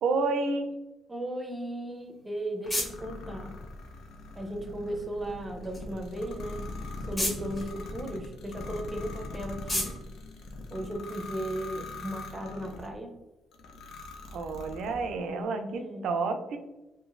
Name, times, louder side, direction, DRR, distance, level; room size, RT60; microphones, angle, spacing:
voice 1, 0.0-0.7 14.3-16.6, right 3 dB, 75° right, 7 dB, 0.4 m, -30 dB
voice 2, 1.1-3.6 4.4-6.7 7.0-9.9 10.7-13.2 15.2-16.1, right 1 dB, 15° right, 3 dB, 0.6 m, -36 dB
sound 1, 1.9-11.3, left 1 dB, 25° left, 1.2 m, -39 dB
sound 2, 2.6-12.9 13.5-15.2, left 2 dB, 75° left, 0.4 m, -41 dB
2.9 x 2.5 x 2.4 m, 1.0 s
cardioid pair, 90°, 0 cm